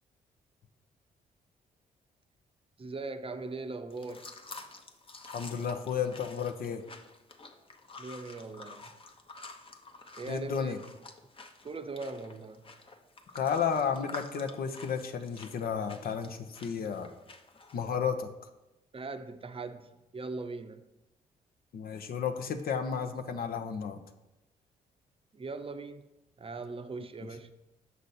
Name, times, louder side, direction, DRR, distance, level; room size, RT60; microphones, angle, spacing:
voice 1, 2.8-4.4 8.0-9.0 10.2-11.0 11.6-12.7 18.9-20.8 25.3-26.1 26.4-27.5, right 3 dB, 35° right, 0.6 m, -40 dB
sound 1, 3.9-17.9, left 3 dB, 35° left, 0.9 m, -50 dB
voice 2, 5.3-6.8 10.3-10.8 13.3-17.1 17.7-18.3 21.7-24.0, left 7 dB, 65° left, 0.8 m, -32 dB
6.9 x 5.1 x 4.2 m
supercardioid pair, 55°, 17 cm